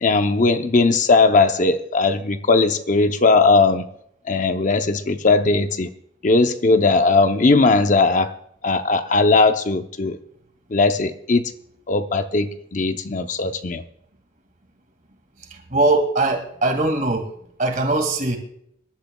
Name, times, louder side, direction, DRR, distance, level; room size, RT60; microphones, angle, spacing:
voice 1, 0.0-3.9 4.3-5.9 6.2-8.4 8.6-10.2 10.7-11.5 11.9-13.8, left 3 dB, 40° left, 0.7 m, -18 dB
voice 2, 15.5-17.3 17.6-18.4, right 2 dB, 45° right, 2.2 m, -21 dB
25.5 x 12.0 x 2.3 m
head